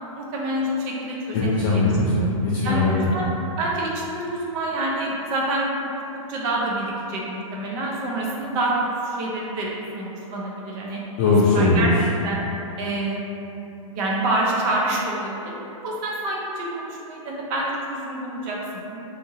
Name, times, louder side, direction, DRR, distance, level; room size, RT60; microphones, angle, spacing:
voice 1, 0.1-1.7 2.6-3.2 3.6-5.7 6.3-9.7 10.0-11.0 11.5-11.9 12.2-12.4 12.8-13.2 13.8-15.5 15.8-19.0, right 1 dB, 30° right, -4 dB, 0.5 m, -27 dB
voice 2, 1.3-3.3 11.2-11.9, left 2 dB, 30° left, -8 dB, 0.4 m, -20 dB
2.8 x 2.6 x 2.5 m, 2.8 s
hypercardioid pair, 150°, 18 cm